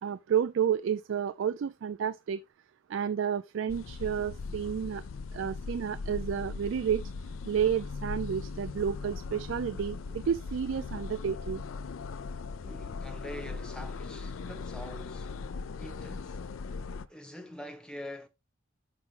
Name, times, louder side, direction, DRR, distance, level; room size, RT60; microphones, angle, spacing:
voice 1, 0.0-2.4 2.9-5.0 5.3-7.0 7.5-11.6, right 8 dB, 70° right, 0.3 m, -31 dB
sound 1, 3.7-17.1, left 4 dB, 85° left, 0.4 m, -39 dB
voice 2, 12.6-15.4 15.8-16.4 17.1-18.3, equal, 5° left, 1.0 m, -44 dB
5.8 x 5.2 x 3.8 m
head